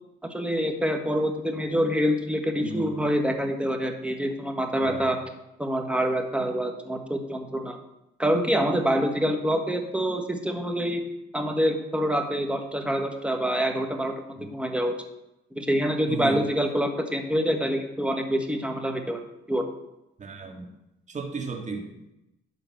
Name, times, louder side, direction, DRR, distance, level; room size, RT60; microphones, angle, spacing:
voice 1, 0.3-5.2 5.6-7.8 8.2-11.0 11.3-14.9 15.5-19.2 19.5-19.7, equal, 5° right, 5 dB, 1.4 m, -26 dB
voice 2, 2.6-3.0 4.8-5.1 14.4-14.5 16.1-16.5 20.2-20.7 21.1-22.1, right 4 dB, 35° right, 3 dB, 1.9 m, -34 dB
11.5 x 3.9 x 7.6 m, 0.90 s
cardioid pair, 90°, 20 cm